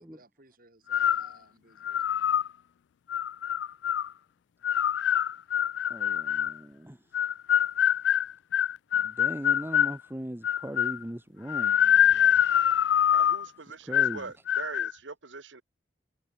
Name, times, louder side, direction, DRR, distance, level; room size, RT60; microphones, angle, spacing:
voice 1, 0.0-2.2, right 2 dB, 50° right, 7.8 m, -61 dB
sound 1, 0.9-1.3 1.8-2.5 3.1-4.1 4.6-6.6 7.1-10.0 10.4-11.0 11.5-13.5 13.9-14.2 14.5-14.9, left 10 dB, 70° left, 0.3 m, -24 dB
voice 2, 5.9-7.0 9.0-12.4 13.9-14.2, equal, 10° right, 1.0 m, -39 dB
voice 3, 13.1-15.6, right 4 dB, 80° right, 1.4 m, -41 dB
head